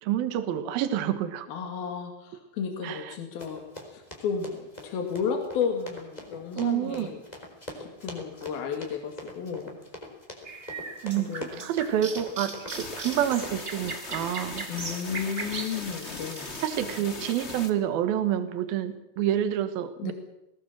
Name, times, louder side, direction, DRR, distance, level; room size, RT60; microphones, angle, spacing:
voice 1, 0.0-1.5 2.8-3.1 6.6-7.1 11.0-14.7 16.6-20.1, right 10 dB, 80° right, 10 dB, 3.2 m, -28 dB
voice 2, 1.5-3.6 3.9-7.2 7.8-9.7 11.1-11.7 14.7-16.5 20.0-20.1, left 6 dB, 80° left, 4 dB, 4.1 m, -33 dB
Run, 3.4-13.5, left 1 dB, 10° left, 3.9 m, -43 dB
sound 1, 10.4-16.7, right 4 dB, 55° right, 0.6 m, -39 dB
sound 2, 12.7-17.7, left 3 dB, 35° left, 1.1 m, -39 dB
20.5 x 19.0 x 7.5 m, 0.89 s
omnidirectional pair, 4.3 m